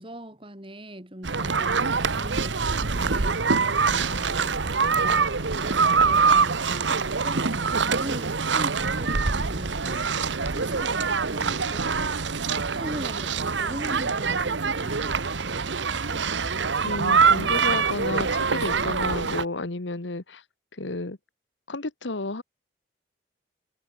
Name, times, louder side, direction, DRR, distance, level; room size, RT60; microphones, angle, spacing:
voice 1, 0.0-16.2, equal, 30° right, 3.8 m, -41 dB
sound 1, 1.2-19.4, right 5 dB, 80° right, 1.2 m, -24 dB
voice 2, 16.8-20.4 20.8-21.2 21.7-22.4, left 2 dB, 80° left, 1.5 m, -31 dB
head